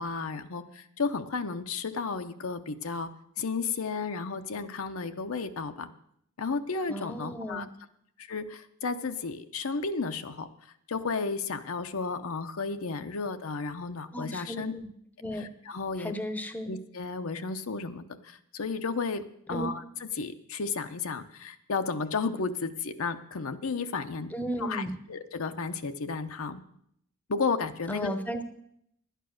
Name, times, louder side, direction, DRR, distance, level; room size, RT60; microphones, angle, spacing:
voice 1, 0.0-3.1 3.4-5.9 6.4-7.7 8.2-10.5 10.9-14.7 15.3-16.1 16.7-19.2 19.5-24.3 24.6-26.6 27.3-28.1, left 4 dB, 70° left, 8 dB, 0.7 m, -33 dB
voice 2, 6.9-7.7 14.1-14.9 15.2-15.5 16.0-16.7 19.5-19.7 24.3-25.0 27.9-28.4, equal, 5° left, 9 dB, 0.8 m, -34 dB
11.5 x 9.1 x 6.4 m, 0.72 s
head